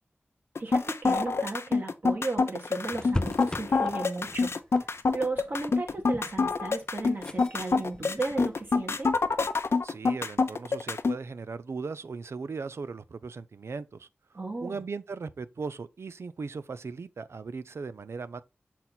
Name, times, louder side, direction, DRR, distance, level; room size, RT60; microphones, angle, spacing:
sound 1, 0.6-11.2, left 4 dB, 75° left, 0.6 m, -26 dB
voice 1, 0.6-4.6 5.1-9.1 14.3-14.8, right 3 dB, 50° right, 1.8 m, -35 dB
sound 2, 2.8-9.0, left 1 dB, 20° left, 0.4 m, -39 dB
voice 2, 9.8-14.1 14.6-18.4, right 4 dB, 85° right, 0.5 m, -38 dB
6.0 x 4.1 x 4.1 m
wide cardioid pair, 70°, 4 cm